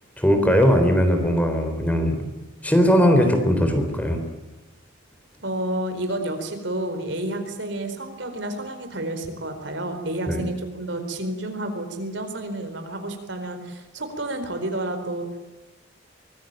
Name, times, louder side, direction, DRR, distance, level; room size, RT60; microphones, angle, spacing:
voice 1, 0.2-2.3 2.6-4.2 10.3-10.4, equal, 10° left, 6 dB, 3.8 m, -19 dB
voice 2, 5.4-15.4, right 1 dB, 65° right, 7 dB, 4.4 m, -30 dB
24.5 x 20.5 x 9.1 m, 1.1 s
head